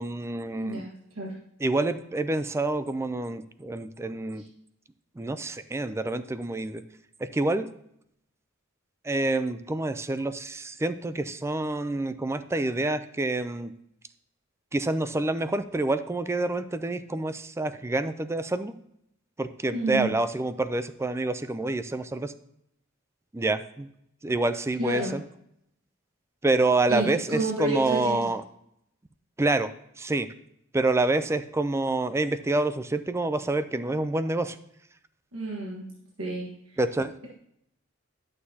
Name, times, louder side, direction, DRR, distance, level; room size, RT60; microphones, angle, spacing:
voice 1, 0.0-0.9 1.6-4.4 5.2-6.8 7.3-7.7 9.0-13.7 14.7-18.7 19.4-22.3 23.3-23.9 24.2-25.2 26.4-28.4 29.4-30.3 30.7-34.6 36.8-37.1, right 2 dB, 15° right, 12 dB, 0.4 m, -27 dB
voice 2, 0.5-1.4 4.4-4.5 19.7-20.1 24.8-25.1 26.9-28.3 35.3-35.9 36.2-36.8, right 2 dB, 85° right, -4 dB, 1.4 m, -31 dB
11.0 x 6.5 x 2.8 m, 0.75 s
head